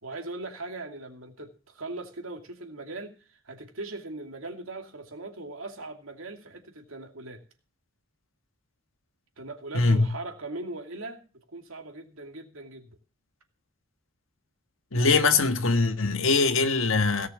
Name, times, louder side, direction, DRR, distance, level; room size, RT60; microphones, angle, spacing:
voice 1, 0.0-7.4 9.4-11.2 11.5-12.9, right 2 dB, 70° right, 2.7 m, -39 dB
voice 2, 9.7-10.1 14.9-17.3, left 3 dB, 65° left, 1.6 m, -22 dB
17.5 x 6.5 x 7.3 m
head